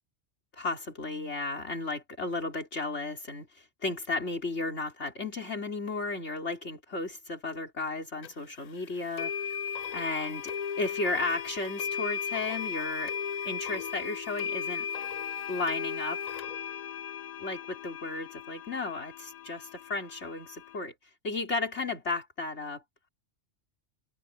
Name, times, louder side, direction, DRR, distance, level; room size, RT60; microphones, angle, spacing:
voice 1, 0.5-9.3 9.9-10.5 10.8-13.1 13.4-14.9 15.5-16.4 17.4-20.9 21.2-22.8, left 3 dB, 75° left, 4.4 m, -34 dB
sound 1, 8.2-8.3 9.2-20.8, left 7 dB, 60° left, 0.4 m, -36 dB
omnidirectional pair, 1.2 m